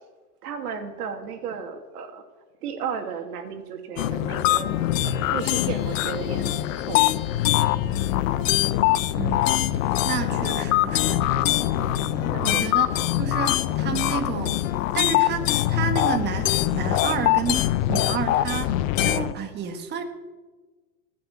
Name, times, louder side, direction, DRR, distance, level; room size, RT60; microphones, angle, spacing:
voice 1, 0.4-2.2 2.6-4.8 5.0-7.0 10.2-10.5 12.3-12.6, right 7 dB, 70° right, 6 dB, 2.6 m, -34 dB
sound 1, 4.0-19.3, left 13 dB, 55° left, 0.9 m, -23 dB
voice 2, 9.2-11.3 12.1-14.6 14.9-20.0, right 7 dB, 20° right, 5 dB, 1.4 m, -31 dB
19.0 x 6.7 x 8.5 m, 1.3 s
hypercardioid pair, 135°, 47 cm